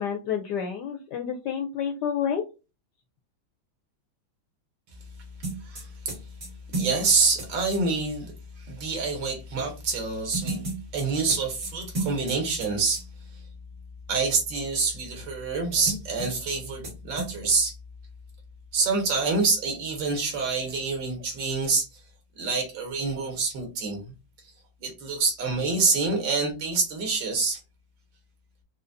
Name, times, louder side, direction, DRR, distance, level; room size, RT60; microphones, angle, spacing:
voice 1, 0.0-2.4, left 8 dB, 75° left, 4 dB, 1.0 m, -29 dB
sound 1, 5.4-7.8 10.3-12.7 12.9-13.0 15.9-16.6 16.8-16.9 17.2-17.6, right 3 dB, 50° right, 2.4 m, -33 dB
voice 2, 5.6-6.2 6.7-8.3 8.6-10.6 10.9-13.0 14.1-17.8 18.7-21.9 22.4-24.1 24.8-27.6, right 4 dB, 70° right, 1 dB, 1.9 m, -26 dB
4.8 x 2.2 x 2.6 m, 0.29 s
omnidirectional pair, 2.2 m